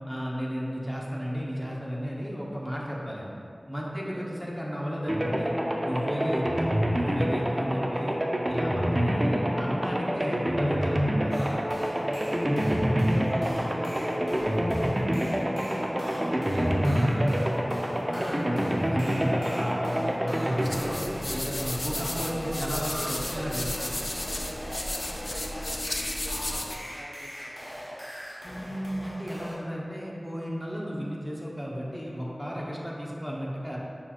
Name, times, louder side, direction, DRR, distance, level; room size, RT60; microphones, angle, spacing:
voice 1, 0.1-3.3 3.7-5.5 5.8-8.2 8.5-11.6 18.1-21.0 21.3-23.7 28.4-33.8, equal, ahead, -4 dB, 0.8 m, -34 dB
voice 2, 3.9-4.2 11.9-17.6 21.8-26.0 26.2-27.6, right 1 dB, 85° right, -2 dB, 0.4 m, -42 dB
sound 1, 5.1-22.0, equal, 25° right, 0.4 m, -27 dB
sound 2, 11.3-29.6, equal, 30° left, 1.1 m, -41 dB
sound 3, 20.6-26.8, left 1 dB, 50° left, 0.3 m, -33 dB
6.3 x 2.9 x 2.4 m, 2.4 s
wide cardioid pair, 45°, 0 cm